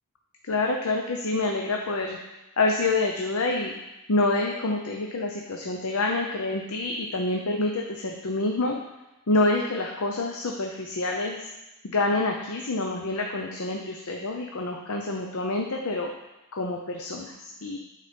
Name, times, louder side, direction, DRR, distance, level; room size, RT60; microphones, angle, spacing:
voice 1, 0.4-2.2 2.6-3.7 4.1-8.8 9.3-11.5 11.8-16.1 16.5-17.8, left 2 dB, 75° left, 1 dB, 0.7 m, -27 dB
9.3 x 4.2 x 5.2 m, 1.0 s
head